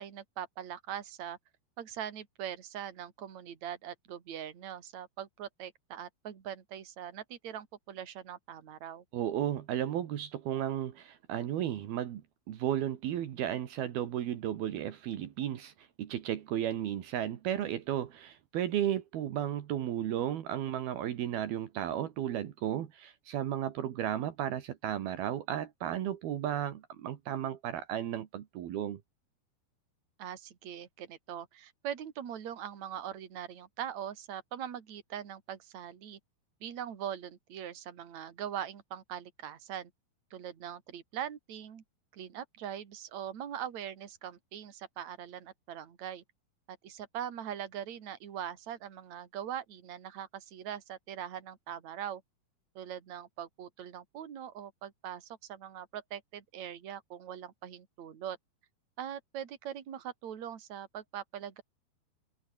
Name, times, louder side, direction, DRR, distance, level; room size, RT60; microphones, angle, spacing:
voice 1, 0.0-1.4 1.8-9.0 30.2-36.2 36.6-39.9 40.3-41.8 42.1-46.2 46.7-52.2 52.8-58.4 59.0-61.6, right 10 dB, 50° right, 3.6 m, -41 dB
voice 2, 9.1-12.2 12.5-29.0, right 11 dB, 70° right, 3.5 m, -34 dB
omnidirectional pair, 4.6 m